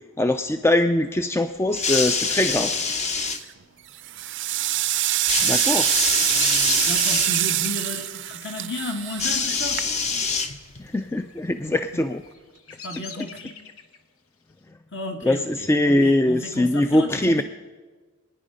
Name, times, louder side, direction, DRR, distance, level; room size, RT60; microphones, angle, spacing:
voice 1, 0.2-2.7 5.4-5.9 10.8-12.2 15.2-17.4, left 1 dB, 10° left, 9 dB, 0.3 m, -22 dB
sound 1, 1.7-3.4 5.3-7.3 9.2-10.9 11.9-12.0, left 5 dB, 30° left, 0.8 m, -25 dB
sound 2, 3.1-3.5 4.0-10.3, right 15 dB, 55° right, 0.5 m, -24 dB
Bird vocalization bird call bird song, 5.5-10.6 10.8-11.4 12.0-14.0, left 6 dB, 80° left, 1.1 m, -40 dB
voice 2, 6.2-9.8 11.9-12.0 12.8-13.5 14.9-17.4, left 2 dB, 55° left, 2 dB, 2.2 m, -34 dB
25.5 x 9.8 x 5.1 m, 1.4 s
head